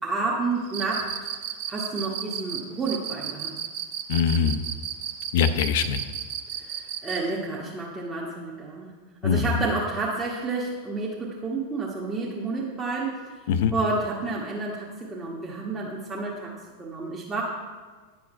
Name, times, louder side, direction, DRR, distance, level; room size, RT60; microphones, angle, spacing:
voice 1, 0.0-1.1 1.7-3.5 6.6-8.9 9.2-13.3 13.7-17.4, right 3 dB, 15° right, -5 dB, 1.3 m, -30 dB
Cricket, 0.7-7.3, right 9 dB, 50° right, 0.7 m, -33 dB
voice 2, 4.1-4.6 5.3-6.0 9.2-9.5 13.5-13.7, left 7 dB, 55° left, 11 dB, 0.5 m, -22 dB
10.0 x 6.3 x 4.2 m, 1.4 s
figure-of-eight pair, 90°, 0 cm